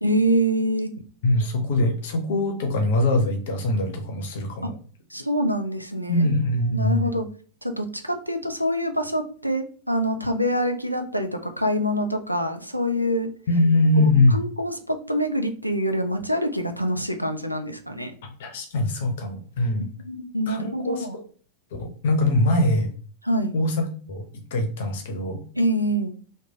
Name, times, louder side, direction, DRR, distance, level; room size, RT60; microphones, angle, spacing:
voice 1, 0.0-0.9 4.6-4.7 5.1-6.3 6.7-7.2 7.6-13.3 13.9-18.1 19.8-21.2 23.2-23.5 25.5-26.1, equal, 90° right, 5 dB, 0.4 m, -25 dB
voice 2, 1.2-4.7 6.1-7.1 13.5-14.4 18.4-19.9 20.5-21.2 21.8-22.9 23.5-24.2 24.5-25.4, left 1 dB, 55° left, 4 dB, 0.6 m, -22 dB
3.1 x 2.1 x 3.7 m, 0.42 s
figure-of-eight pair, 90°, 0 cm